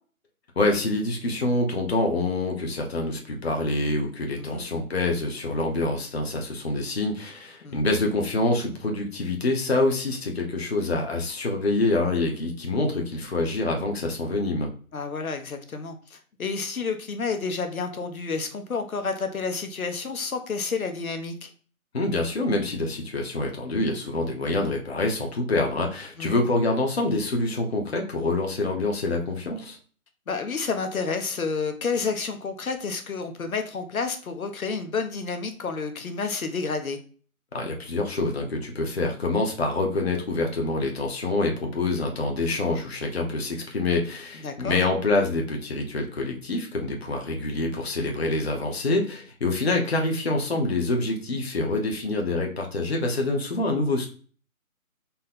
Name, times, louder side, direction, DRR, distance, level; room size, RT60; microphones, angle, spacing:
voice 1, 0.6-14.7 21.9-29.8 37.5-54.1, left 2 dB, 45° left, 1 dB, 0.8 m, -26 dB
voice 2, 14.9-21.5 26.2-26.4 30.3-37.0 44.4-44.8, left 4 dB, 75° left, 6 dB, 0.9 m, -30 dB
4.2 x 2.1 x 3.7 m, 0.42 s
hypercardioid pair, 175°, 43 cm